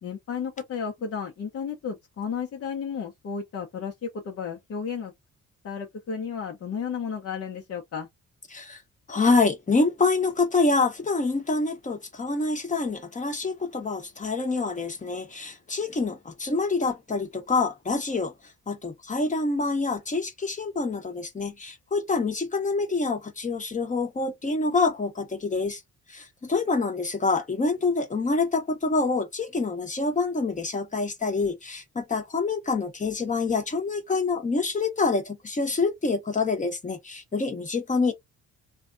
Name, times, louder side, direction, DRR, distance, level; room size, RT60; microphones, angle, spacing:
voice 1, 0.0-5.1 5.6-8.1, left 6 dB, 55° left, 0.8 m, -33 dB
voice 2, 8.5-8.8 9.1-18.3 18.7-25.8 26.1-38.1, left 3 dB, 25° left, 0.9 m, -26 dB
3.2 x 2.3 x 2.5 m
cardioid pair, 90°, 30 cm